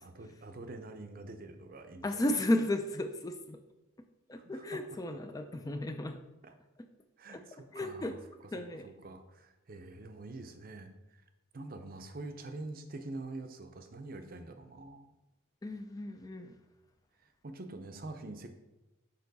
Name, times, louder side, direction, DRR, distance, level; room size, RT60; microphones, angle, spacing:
voice 1, 0.0-2.1 4.3-5.2 6.4-6.5 7.2-11.2 11.5-15.1 17.4-18.5, right 2 dB, 45° right, 8 dB, 0.6 m, -46 dB
voice 2, 2.0-3.6 4.3-6.2 7.3-7.4 7.7-8.1 8.5-8.8 15.6-16.5, left 1 dB, 15° left, 7 dB, 0.3 m, -34 dB
6.7 x 5.5 x 4.0 m, 1.0 s
head